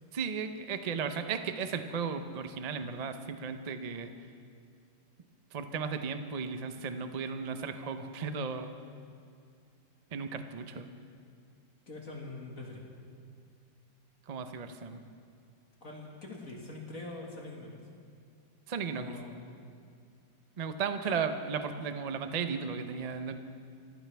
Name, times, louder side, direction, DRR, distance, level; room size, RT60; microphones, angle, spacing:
voice 1, 0.1-4.1 5.5-8.7 10.1-10.9 14.3-15.0 18.7-19.2 20.6-23.4, right 6 dB, 80° right, 8 dB, 0.3 m, -35 dB
voice 2, 11.9-12.9 15.8-17.8 18.9-19.4 21.1-21.2, left 2 dB, 45° left, -1 dB, 2.2 m, -43 dB
26.5 x 15.0 x 3.4 m, 2.4 s
omnidirectional pair, 2.0 m